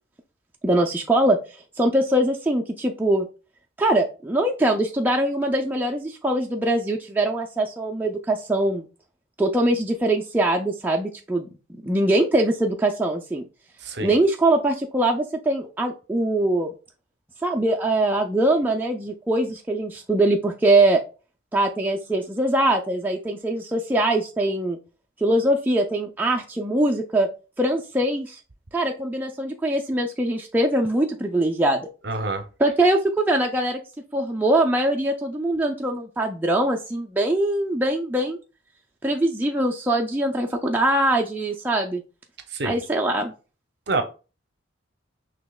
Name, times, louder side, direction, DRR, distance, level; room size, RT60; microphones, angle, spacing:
voice 1, 0.6-1.4 1.8-3.3 3.8-8.8 9.4-11.5 11.8-13.4 14.0-16.7 17.4-21.0 21.5-24.8 25.2-27.3 27.6-28.4 28.7-31.9 32.6-33.8 34.1-38.4 39.0-42.0 42.6-43.3, right 1 dB, 10° right, 0.3 m, -22 dB
voice 2, 13.8-14.2 32.0-32.4 42.5-42.8 43.9-44.0, right 2 dB, 55° right, 0.7 m, -26 dB
6.1 x 2.8 x 2.3 m
head